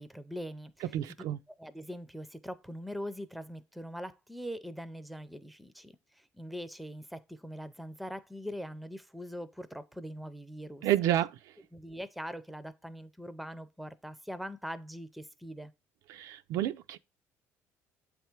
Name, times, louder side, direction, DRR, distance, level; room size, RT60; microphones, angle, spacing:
voice 1, 0.0-0.9 1.6-10.9 11.7-15.7, equal, ahead, 0.4 m, -42 dB
voice 2, 0.8-1.4 10.8-11.5 16.1-17.0, right 12 dB, 70° right, 0.4 m, -30 dB
7.7 x 3.5 x 4.4 m
cardioid pair, 145°, 6 cm